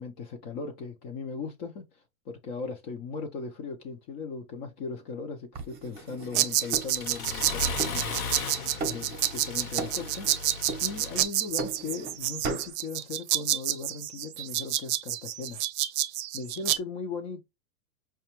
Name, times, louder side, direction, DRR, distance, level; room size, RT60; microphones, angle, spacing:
voice 1, 0.0-8.1 8.8-10.5 10.8-15.6 16.3-17.4, left 4 dB, 35° left, 0.6 m, -38 dB
sound 1, 5.6-7.5 7.8-8.5 8.8-9.5 9.8-10.4 10.7-12.2 12.4-12.7, right 4 dB, 20° right, 0.8 m, -37 dB
Accelerating revving vroom, 6.0-11.2, left 4 dB, 75° left, 1.1 m, -37 dB
sound 2, 6.3-16.8, right 13 dB, 50° right, 0.6 m, -29 dB
4.7 x 2.3 x 2.9 m
supercardioid pair, 135°, 43 cm